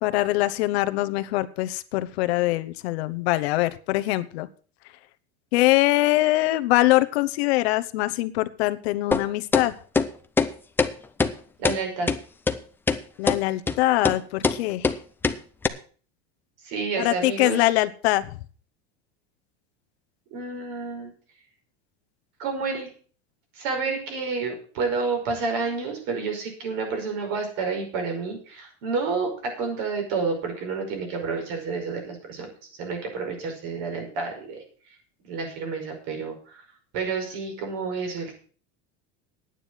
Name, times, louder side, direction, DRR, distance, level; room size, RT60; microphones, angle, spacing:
voice 1, 0.0-4.5 5.5-9.8 13.2-15.0 17.0-18.4, left 17 dB, 75° left, 12 dB, 1.0 m, -23 dB
sound 1, 9.1-9.2 9.5-9.7 10.0-10.1 10.4-10.5 10.8-10.9 11.2-11.3 11.6-11.8 12.1-12.2 12.5-12.6 12.9-13.0 13.3-13.4 13.7-13.8 14.0-14.2 14.4-14.6 14.8-15.0 15.2-15.4 15.6-15.7, left 4 dB, 5° left, 0.4 m, -22 dB
voice 2, 11.6-12.1 16.6-17.7 20.3-21.1 22.4-22.9 23.5-32.5 32.8-34.6 35.2-36.6 36.9-38.3, right 4 dB, 55° right, 3 dB, 5.3 m, -29 dB
10.0 x 9.3 x 6.3 m, 0.41 s
supercardioid pair, 155°, 33 cm